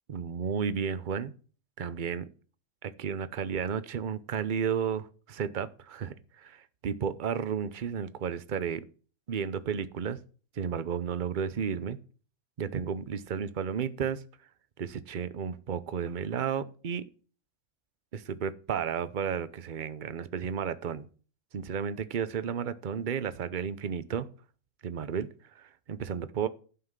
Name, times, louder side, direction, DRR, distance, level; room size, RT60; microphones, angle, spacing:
voice 1, 0.1-1.3 1.8-2.3 2.8-8.9 9.3-10.2 10.5-12.0 12.6-14.2 14.8-17.0 18.1-21.1 21.5-24.3 24.8-26.5, right 7 dB, 45° right, 14 dB, 0.8 m, -33 dB
11.5 x 5.8 x 7.3 m, 0.39 s
omnidirectional pair, 1.3 m